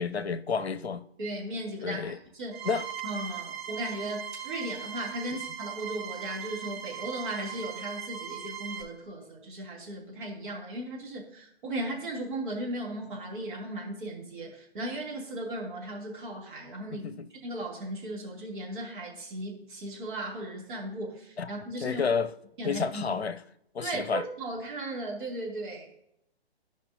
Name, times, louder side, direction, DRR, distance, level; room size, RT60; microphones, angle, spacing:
voice 1, 0.0-1.0 1.8-2.2 2.6-2.9 5.3-5.4 16.9-17.3 21.4-21.5 21.8-22.3 22.6-23.4 23.7-24.2, left 5 dB, 75° left, 0.6 m, -30 dB
voice 2, 1.2-2.7 3.0-17.1 17.4-22.0 22.6-23.2 23.8-25.9, right 1 dB, 50° right, 2.8 m, -36 dB
sound 1, 2.5-8.8, right 9 dB, 70° right, 2.8 m, -39 dB
15.5 x 5.2 x 2.7 m
figure-of-eight pair, 130°, 32 cm